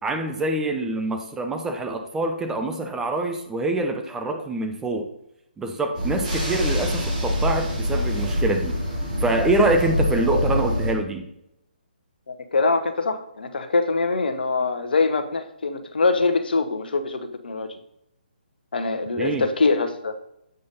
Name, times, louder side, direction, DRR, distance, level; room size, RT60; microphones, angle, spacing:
voice 1, 0.0-5.1 5.6-8.8 9.2-11.3 19.2-19.5, right 2 dB, 10° right, 4 dB, 0.7 m, -25 dB
sound 1, 5.9-10.9, left 1 dB, 50° right, 3.1 m, -25 dB
voice 2, 12.3-17.7 18.7-20.2, left 3 dB, 70° left, 8 dB, 1.0 m, -23 dB
7.9 x 5.1 x 4.0 m, 0.80 s
figure-of-eight pair, 145°, 5 cm